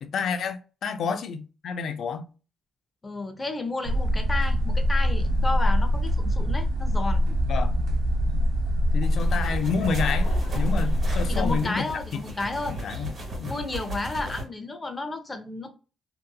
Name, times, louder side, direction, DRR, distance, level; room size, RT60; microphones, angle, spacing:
voice 1, 0.0-2.3 7.5-7.7 8.9-10.3 10.5-11.8 12.8-13.1 13.4-13.6, left 6 dB, 65° left, 0.4 m, -29 dB
voice 2, 3.0-7.3 11.3-12.8 13.4-15.7, left 2 dB, 25° left, 0.7 m, -32 dB
sound 1, 3.8-11.6, equal, 70° right, 0.3 m, -24 dB
Laughter / Crowd, 9.0-13.7, left 1 dB, 80° left, 0.8 m, -44 dB
sound 2, 9.0-14.4, equal, 45° right, 1.3 m, -37 dB
2.7 x 2.5 x 2.2 m
cardioid pair, 90°, 0 cm